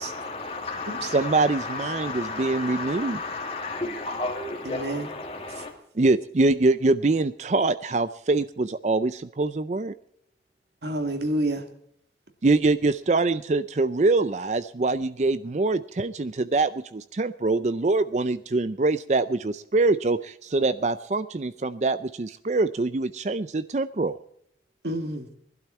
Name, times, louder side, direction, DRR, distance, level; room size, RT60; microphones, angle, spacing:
voice 1, 0.0-5.7, left 3 dB, 35° left, 1 dB, 2.1 m, -33 dB
voice 2, 1.1-3.2 6.0-9.9 12.4-24.2, right 3 dB, 40° right, 12 dB, 0.5 m, -24 dB
voice 3, 4.6-5.1 10.8-11.7 24.8-25.3, right 1 dB, 75° right, 5 dB, 2.1 m, -29 dB
20.5 x 12.0 x 4.4 m, 0.69 s
head